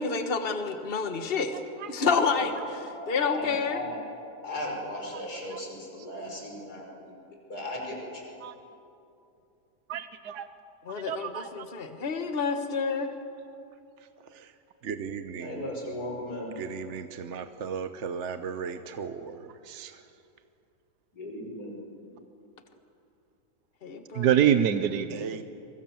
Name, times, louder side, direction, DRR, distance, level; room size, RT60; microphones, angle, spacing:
voice 1, 0.0-1.6 1.9-3.8 10.8-13.1 23.8-24.3, left 5 dB, 35° left, 7 dB, 1.6 m, -29 dB
voice 2, 2.8-4.0 4.4-7.2 7.5-8.2 15.4-16.5 21.1-21.8, left 1 dB, 75° left, -1 dB, 6.2 m, -37 dB
voice 3, 9.9-10.5 11.1-11.7 17.3-17.4 24.1-25.4, right 9 dB, 85° right, 10 dB, 1.4 m, -26 dB
voice 4, 14.0-15.7 16.6-20.2 25.1-25.4, right 6 dB, 50° right, 9 dB, 1.1 m, -37 dB
28.5 x 24.0 x 7.3 m, 2.7 s
omnidirectional pair, 1.7 m